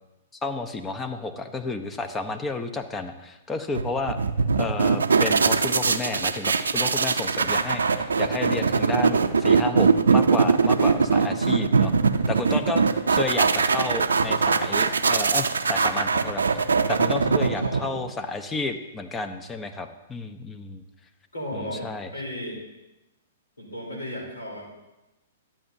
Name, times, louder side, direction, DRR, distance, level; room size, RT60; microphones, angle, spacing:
voice 1, 0.4-4.2 4.6-11.9 12.3-20.8 21.5-22.1, left 3 dB, 15° left, 8 dB, 0.7 m, -31 dB
sound 1, 3.8-18.1, right 5 dB, 85° right, 0.5 m, -22 dB
voice 2, 17.4-18.0 21.3-22.6 23.6-24.7, equal, 90° left, -2 dB, 3.5 m, -35 dB
12.0 x 8.8 x 2.7 m, 1.0 s
hypercardioid pair, 120°, 0 cm